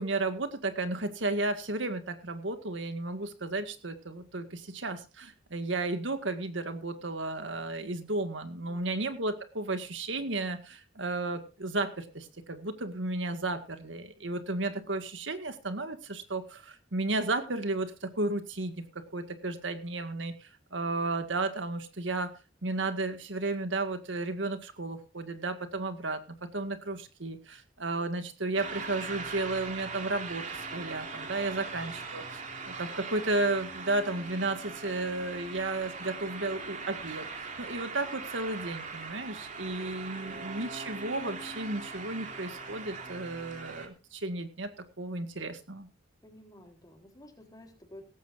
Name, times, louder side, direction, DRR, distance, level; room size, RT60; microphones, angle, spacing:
voice 1, 0.0-18.7 19.1-22.3 22.6-26.2 26.5-44.7 45.0-45.9, right 2 dB, 75° right, 8 dB, 1.9 m, -33 dB
voice 2, 8.7-9.0 31.6-32.1 39.6-40.4 46.2-48.1, left 1 dB, 20° left, 3 dB, 3.8 m, -53 dB
sound 1, 28.5-43.9, right 4 dB, 40° right, 2.7 m, -41 dB
18.0 x 15.0 x 2.6 m, 0.30 s
head